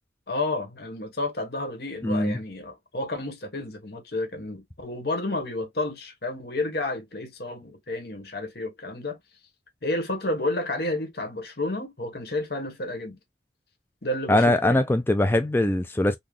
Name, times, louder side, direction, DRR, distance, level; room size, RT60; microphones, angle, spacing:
voice 1, 0.3-9.2 9.8-13.2 14.0-14.8, left 2 dB, 60° left, 1.3 m, -31 dB
voice 2, 2.0-2.4 14.3-16.2, left 1 dB, 10° left, 0.4 m, -21 dB
3.9 x 2.3 x 3.1 m
head